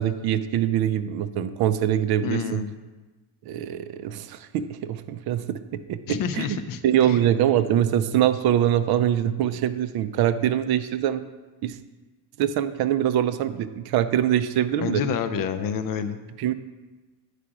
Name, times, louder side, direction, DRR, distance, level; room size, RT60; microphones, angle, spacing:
voice 1, 0.0-2.6 3.5-6.6 6.8-11.2 11.6-11.8 12.4-15.0 16.4-16.5, right 10 dB, 55° right, 12 dB, 0.5 m, -23 dB
voice 2, 2.2-2.8 6.1-6.8 7.1-7.2 14.8-16.2, left 7 dB, 50° left, 10 dB, 0.6 m, -28 dB
9.8 x 5.0 x 5.9 m, 1.2 s
cardioid pair, 160°, 46 cm